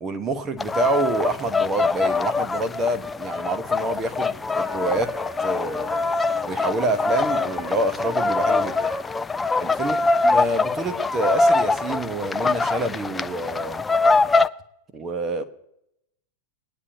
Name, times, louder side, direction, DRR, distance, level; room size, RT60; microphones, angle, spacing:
voice 1, 0.0-5.1 5.4-5.9 6.4-8.8 9.6-10.0 10.2-13.9 14.9-15.4, right 2 dB, 25° right, 9 dB, 1.1 m, -27 dB
sound 1, 0.6-14.5, left 3 dB, 15° left, 0.3 m, -23 dB
sound 2, 4.6-9.1, left 1 dB, ahead, 1.7 m, -39 dB
21.5 x 9.8 x 2.8 m, 0.81 s
figure-of-eight pair, 90°, 0 cm